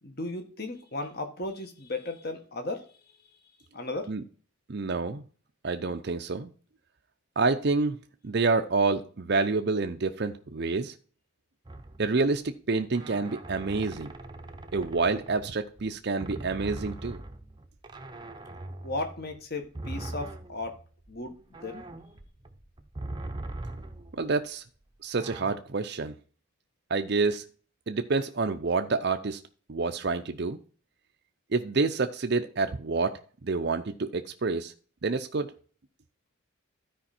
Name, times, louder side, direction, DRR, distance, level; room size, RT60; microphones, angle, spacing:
voice 1, 0.0-2.9 3.7-4.1 18.8-20.8 21.1-21.3 21.6-21.8, left 2 dB, 45° left, 6 dB, 1.7 m, -35 dB
voice 2, 4.7-5.2 5.6-6.5 7.4-8.0 8.2-10.9 12.0-14.1 14.7-17.2 24.1-24.6 25.0-26.1 26.9-27.4 27.9-29.4 29.7-30.6 31.5-34.7 35.0-35.5, right 3 dB, 50° right, 6 dB, 0.6 m, -28 dB
sound 1, 11.7-12.3 12.9-15.9 16.2-24.4 25.2-25.6, right 2 dB, 20° right, 0.7 m, -41 dB
12.5 x 5.1 x 4.3 m, 0.40 s
head